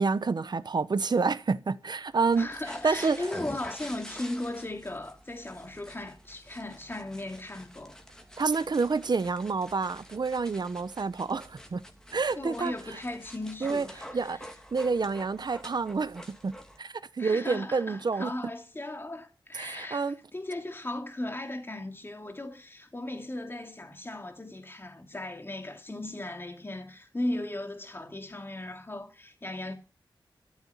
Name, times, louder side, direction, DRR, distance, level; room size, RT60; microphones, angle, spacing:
voice 1, 0.0-2.5 2.8-3.3 8.4-11.8 12.1-12.7 13.6-13.9 14.1-14.4 14.7-18.3 19.5-20.2, right 4 dB, 55° right, 1.0 m, -28 dB
dog scratching, 2.1-16.8, equal, 5° left, 2.6 m, -47 dB
voice 2, 2.4-8.0 12.4-14.1 17.2-29.7, left 1 dB, 25° left, 2.7 m, -37 dB
13.5 x 7.3 x 8.5 m
wide cardioid pair, 115°, 9 cm